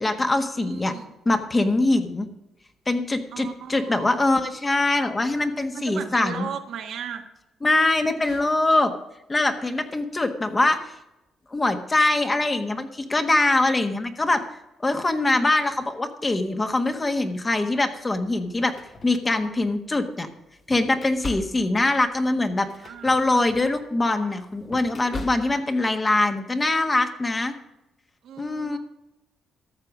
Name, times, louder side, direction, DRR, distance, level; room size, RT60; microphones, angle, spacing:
voice 1, 0.0-0.9 1.2-2.3 2.9-6.5 7.6-8.9 9.3-10.9 11.5-14.4 14.8-18.7 19.0-20.3 20.7-22.7 23.0-27.5 28.4-28.8, left 2 dB, 25° left, 7 dB, 1.4 m, -23 dB
voice 2, 0.6-1.1 3.3-4.1 5.7-7.2 8.2-8.4 22.8-23.7 28.2-28.8, right 7 dB, 75° right, 5 dB, 1.4 m, -37 dB
sound 1, 17.6-17.8 18.4-19.8 20.3-25.8, left 2 dB, 40° left, 1.3 m, -41 dB
13.0 x 6.8 x 6.0 m, 0.93 s
cardioid pair, 90°, 0 cm